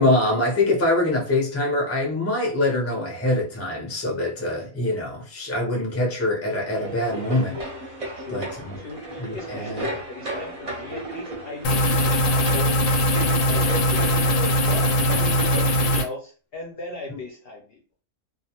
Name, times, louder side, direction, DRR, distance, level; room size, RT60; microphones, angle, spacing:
voice 1, 0.0-7.6 8.3-8.7 9.2-9.9 17.1-17.2, left 2 dB, 15° left, 0.5 m, -24 dB
sound 1, 6.7-16.0, right 2 dB, 40° right, 0.6 m, -34 dB
voice 2, 8.1-13.2 13.4-17.8, left 3 dB, 60° left, 0.7 m, -38 dB
sound 2, 11.6-16.0, equal, 85° left, 1.0 m, -20 dB
2.4 x 2.2 x 2.8 m
omnidirectional pair, 1.4 m